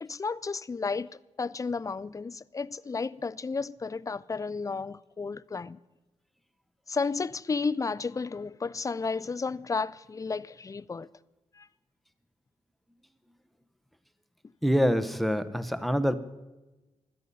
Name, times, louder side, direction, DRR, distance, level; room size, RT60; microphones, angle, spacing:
voice 1, 0.0-5.8 6.9-11.1 11.6-11.7, left 4 dB, 30° left, 0.4 m, -32 dB
voice 2, 14.6-16.2, equal, ahead, 0.8 m, -25 dB
16.5 x 12.5 x 5.4 m
wide cardioid pair, 125°, 12 cm